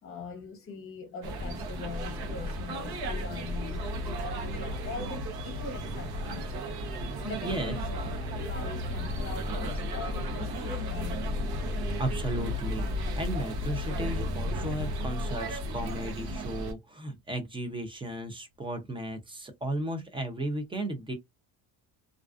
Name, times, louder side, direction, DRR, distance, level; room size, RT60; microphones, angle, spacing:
voice 1, 0.0-6.5 7.2-11.3, left 4 dB, 30° left, 0.9 m, -42 dB
sound 1, 1.2-16.7, equal, 60° right, 0.8 m, -33 dB
voice 2, 7.4-7.8 12.0-21.1, right 1 dB, 15° right, 0.4 m, -35 dB
2.4 x 2.3 x 2.3 m
cardioid pair, 145°, 42 cm